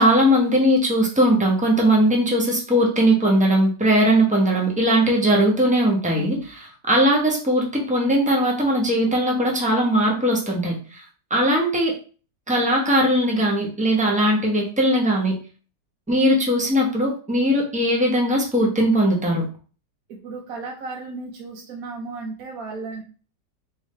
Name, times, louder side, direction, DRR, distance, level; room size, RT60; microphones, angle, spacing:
voice 1, 0.0-11.0 11.3-11.9 12.5-15.3 16.1-19.4, equal, 10° right, -2 dB, 0.5 m, -19 dB
voice 2, 6.1-6.5 20.1-23.0, right 4 dB, 60° right, 0 dB, 1.1 m, -35 dB
3.5 x 3.5 x 3.2 m, 0.38 s
omnidirectional pair, 1.9 m